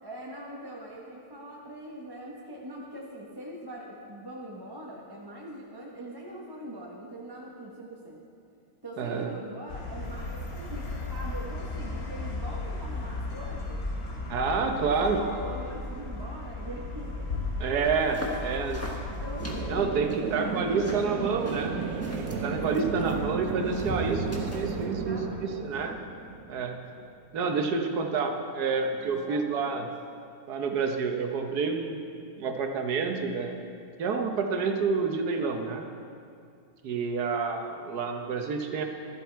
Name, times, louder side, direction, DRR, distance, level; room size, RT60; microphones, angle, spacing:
voice 1, 0.0-8.2 8.8-10.8 11.1-13.8 14.6-17.3 18.0-19.8 20.2-21.5 24.7-25.7 29.0-29.9, right 1 dB, 15° right, -3 dB, 1.0 m, -42 dB
voice 2, 9.0-9.3 14.3-15.3 17.6-18.8 19.7-21.8 22.2-25.9 26.5-26.8 27.3-29.9 30.5-32.0 32.4-33.6 34.0-35.9 36.8-38.8, right 5 dB, 85° right, 4 dB, 1.5 m, -29 dB
sound 1, 9.7-19.9, left 2 dB, 70° left, 1.9 m, -35 dB
sound 2, 17.9-24.8, equal, 10° left, 1.2 m, -41 dB
sound 3, 19.4-26.9, right 5 dB, 65° right, 1.3 m, -33 dB
13.0 x 12.0 x 4.5 m, 2.4 s
omnidirectional pair, 1.6 m